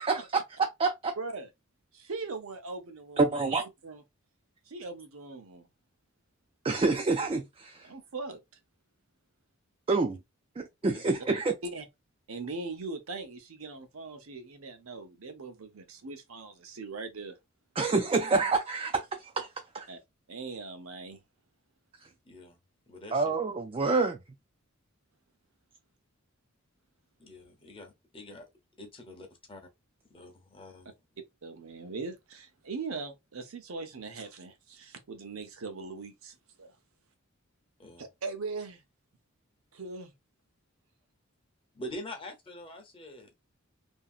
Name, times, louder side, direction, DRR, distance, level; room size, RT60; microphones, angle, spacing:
voice 1, 0.0-1.1 3.2-3.6 6.6-7.9 9.9-10.2 10.6-11.5 17.8-19.5 19.7-19.9 23.1-24.2, right 3 dB, 25° right, 0.3 m, -27 dB
voice 2, 1.2-1.5 1.9-3.4 3.8-4.0 4.7-5.7 7.8-8.4 11.6-11.8 12.3-17.4 19.9-20.0 20.3-21.2 31.4-36.8 38.0-38.8 39.7-40.1, right 3 dB, 80° right, 0.7 m, -40 dB
voice 3, 22.3-22.6 22.9-23.3 27.2-28.5 28.8-29.6 30.1-30.9 37.8-38.0 41.7-43.3, left 1 dB, 25° left, 0.7 m, -45 dB
2.8 x 2.7 x 2.4 m
head